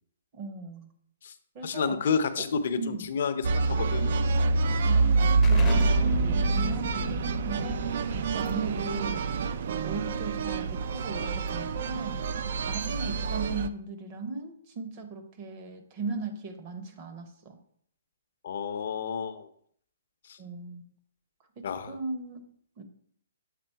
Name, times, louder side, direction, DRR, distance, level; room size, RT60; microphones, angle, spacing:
voice 1, 0.3-0.9 1.5-2.0 2.4-2.5 2.8-3.1 4.8-7.9 8.3-9.2 9.6-12.2 12.7-17.6 20.4-20.9 21.6-22.8, right 3 dB, 25° right, 7 dB, 0.8 m, -38 dB
voice 2, 1.6-4.2 18.4-19.5 20.3-20.4 21.6-22.0, left 6 dB, 50° left, 10 dB, 0.6 m, -30 dB
sound 1, 3.4-13.7, right 4 dB, 45° right, 0.3 m, -26 dB
Explosion, 5.4-10.8, left 6 dB, 10° left, 0.6 m, -36 dB
7.5 x 3.5 x 4.5 m, 0.64 s
hypercardioid pair, 170°, 0 cm